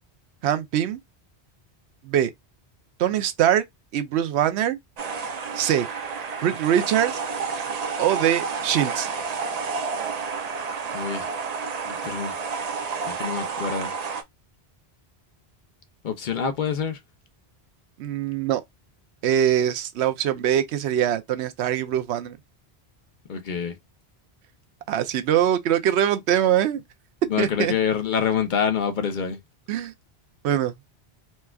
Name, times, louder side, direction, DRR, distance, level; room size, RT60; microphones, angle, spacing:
voice 1, 0.4-1.0 2.0-2.3 3.0-3.6 3.9-4.8 5.6-5.9 6.4-7.2 8.0-9.1 18.0-18.6 19.2-22.4 24.9-26.8 27.4-27.7 29.7-29.9 30.4-30.9, right 10 dB, 90° right, 0.9 m, -23 dB
sound 1, 5.0-14.2, right 5 dB, 50° right, 0.5 m, -30 dB
voice 2, 10.9-11.3 11.9-12.3 13.1-13.9 16.0-17.0 23.3-23.7 27.3-29.4, left 7 dB, 55° left, 0.7 m, -26 dB
4.2 x 2.3 x 2.3 m
omnidirectional pair, 1.1 m